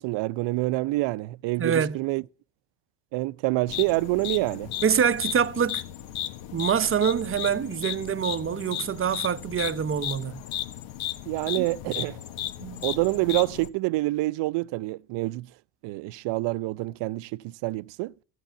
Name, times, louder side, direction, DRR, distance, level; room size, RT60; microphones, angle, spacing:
voice 1, 0.0-2.2 3.1-4.7 11.3-12.2 12.8-15.5 15.8-18.1, right 20 dB, 60° right, 0.6 m, -27 dB
voice 2, 1.6-2.0 4.8-5.8 6.5-10.4 11.6-11.7 12.6-12.8, right 7 dB, 25° right, 0.7 m, -25 dB
sound 1, 3.7-13.7, left 12 dB, 65° left, 1.3 m, -35 dB
13.5 x 8.2 x 8.0 m
supercardioid pair, 90°, 49 cm